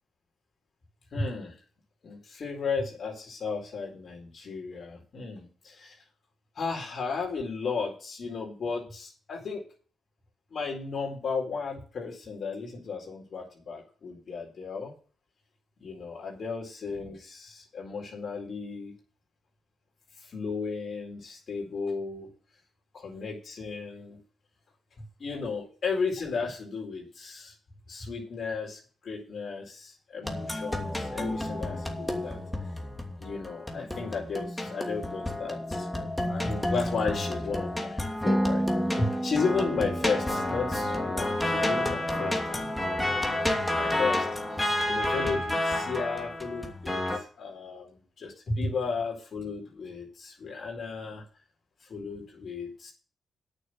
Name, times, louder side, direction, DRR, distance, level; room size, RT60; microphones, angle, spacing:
voice 1, 1.1-1.5 2.0-6.0 6.6-9.6 10.5-14.9 15.8-18.9 20.2-22.3 22.9-24.2 25.2-27.5 27.9-32.4 33.2-38.6 38.9-43.1 43.8-44.2 44.5-51.2 51.9-52.9, left 4 dB, 60° left, -1 dB, 4.2 m, -34 dB
sound 1, 30.2-47.2, left 1 dB, 15° left, 2.7 m, -30 dB
sound 2, 38.3-42.6, right 1 dB, 5° right, 0.8 m, -32 dB
9.0 x 6.5 x 7.5 m, 0.40 s
supercardioid pair, 50°, 0 cm